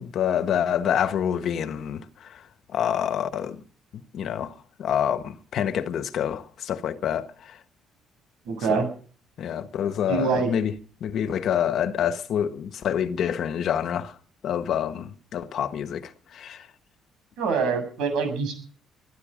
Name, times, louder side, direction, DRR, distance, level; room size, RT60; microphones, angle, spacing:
voice 1, 0.0-2.4 2.7-3.6 3.9-4.5 4.8-7.6 8.7-8.8 9.4-10.7 11.0-14.2 14.4-16.7, left 9 dB, 60° left, 1.4 m, -27 dB
voice 2, 8.5-8.9 10.1-10.5 17.4-18.5, right 5 dB, 85° right, 7.1 m, -25 dB
23.0 x 11.5 x 5.1 m
cardioid pair, 110°, 0 cm